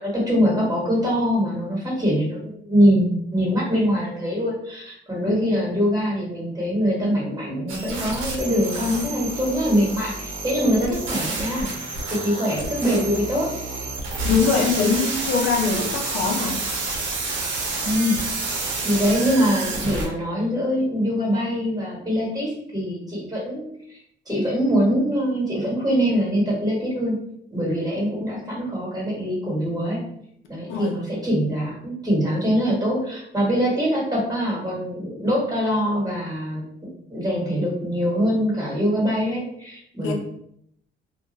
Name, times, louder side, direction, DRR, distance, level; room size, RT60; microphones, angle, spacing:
voice 1, 0.0-11.7 12.1-13.5 17.8-18.2 18.4-18.6 18.8-24.0 24.3-27.1 27.5-30.0 30.5-36.6 37.1-40.1, equal, 20° right, -5 dB, 1.3 m, -23 dB
voice 2, 5.3-5.6 14.2-16.6 18.8-19.0 30.7-30.9 40.0-40.1, left 5 dB, 80° left, 2 dB, 0.5 m, -23 dB
sound 1, 7.7-20.1, right 3 dB, 85° right, 0.8 m, -29 dB
2.2 x 2.2 x 3.0 m, 0.71 s
cardioid pair, 90°, 20 cm